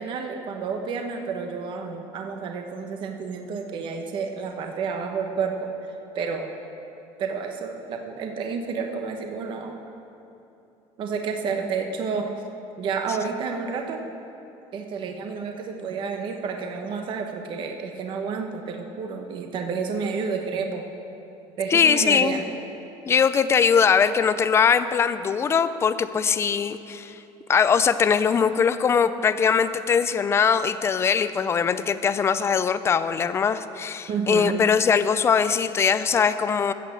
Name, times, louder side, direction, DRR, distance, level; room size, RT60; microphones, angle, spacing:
voice 1, 0.0-5.7 6.1-6.5 7.2-9.8 11.0-12.3 12.8-14.0 14.7-20.9 21.6-22.4 34.1-34.6, right 5 dB, 45° right, 4 dB, 1.1 m, -30 dB
voice 2, 21.7-22.4 23.1-27.2 27.5-36.7, left 6 dB, 20° left, 13 dB, 0.5 m, -21 dB
14.0 x 8.5 x 7.6 m, 2.8 s
cardioid pair, 150°, 12 cm